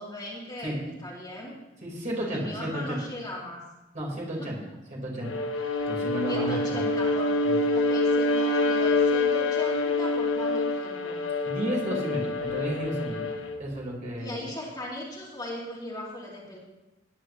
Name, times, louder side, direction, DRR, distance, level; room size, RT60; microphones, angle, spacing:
voice 1, 0.0-1.6 2.2-3.6 4.4-4.5 6.3-7.3 7.7-11.2 14.2-16.6, left 1 dB, 20° left, -5 dB, 2.6 m, -38 dB
voice 2, 1.8-3.0 3.9-4.6 4.9-5.4 5.9-6.8 7.4-7.6 11.5-13.3 13.6-14.4, equal, 40° right, -3 dB, 4.3 m, -32 dB
Bowed string instrument, 5.2-13.6, left 2 dB, 85° left, 1.2 m, -26 dB
18.5 x 10.0 x 3.2 m, 1.0 s
head